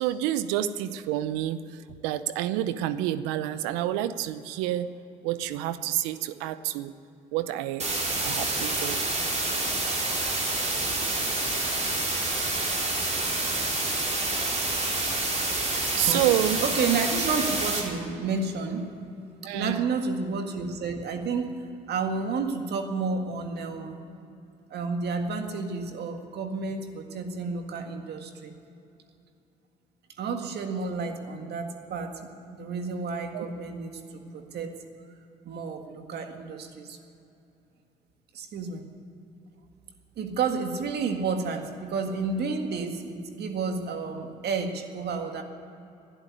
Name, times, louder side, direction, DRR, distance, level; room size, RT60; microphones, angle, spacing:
voice 1, 0.0-4.9 5.2-6.9 7.3-7.9 8.2-9.1 16.0-16.6 19.4-19.9 33.3-33.5, right 13 dB, 90° right, 14 dB, 0.6 m, -28 dB
sound 1, 7.8-17.8, right 2 dB, 40° right, 4.2 m, -28 dB
voice 2, 16.6-18.9 19.5-24.0 24.7-28.6 30.2-34.8 35.5-37.0 38.3-38.9 40.2-45.4, right 4 dB, 65° right, 5 dB, 1.8 m, -31 dB
12.5 x 11.0 x 9.7 m, 2.8 s
supercardioid pair, 65°, 18 cm